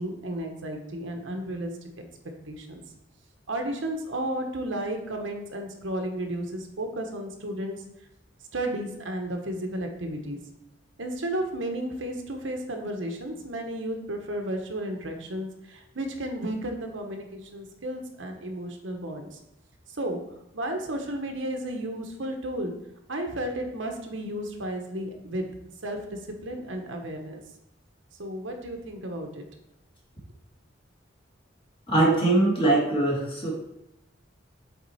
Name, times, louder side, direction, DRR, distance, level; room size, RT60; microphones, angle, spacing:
voice 1, 0.0-1.7 2.5-2.8 3.5-7.8 8.5-10.4 11.0-19.4 20.0-20.2 20.5-22.7 23.1-25.5 25.8-27.4 28.2-29.4, right 1 dB, 80° right, 3 dB, 1.0 m, -33 dB
voice 2, 31.9-33.5, right 2 dB, 25° left, -3 dB, 1.8 m, -22 dB
7.3 x 4.1 x 4.1 m, 0.86 s
head